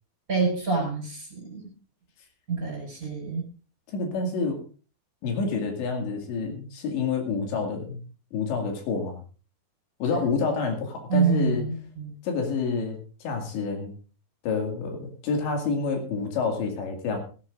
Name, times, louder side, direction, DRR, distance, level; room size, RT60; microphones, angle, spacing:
voice 1, 0.3-1.7 2.5-3.5 11.1-12.1, right 5 dB, 20° right, 1 dB, 4.7 m, -26 dB
voice 2, 3.9-4.6 5.2-8.0 8.3-9.2 10.0-11.7 12.2-13.9 14.4-17.2, left 4 dB, 80° left, 2 dB, 4.4 m, -28 dB
16.5 x 16.0 x 2.5 m, 0.37 s
omnidirectional pair, 5.0 m